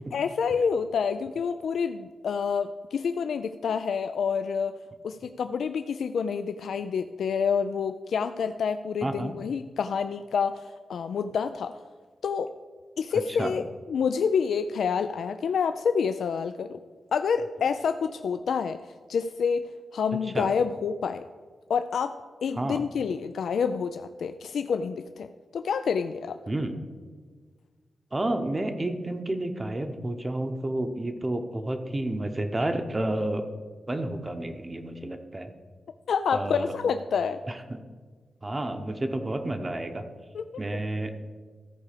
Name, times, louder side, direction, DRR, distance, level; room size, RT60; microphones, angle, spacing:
voice 1, 0.0-4.7 5.0-11.7 12.2-12.5 13.0-16.8 17.1-18.8 19.1-19.6 19.9-21.2 21.7-22.1 22.4-25.3 25.5-26.4 36.1-37.4 40.3-40.4, left 6 dB, 85° left, 9 dB, 0.3 m, -28 dB
voice 2, 9.0-9.4 13.4-13.5 20.3-20.5 22.5-22.8 26.5-26.8 28.1-33.4 33.9-35.5 36.3-36.7 37.5-37.8 38.4-40.0 40.6-41.1, right 1 dB, 20° right, 6 dB, 0.7 m, -30 dB
14.0 x 4.8 x 6.6 m, 1.5 s
wide cardioid pair, 135°, 0 cm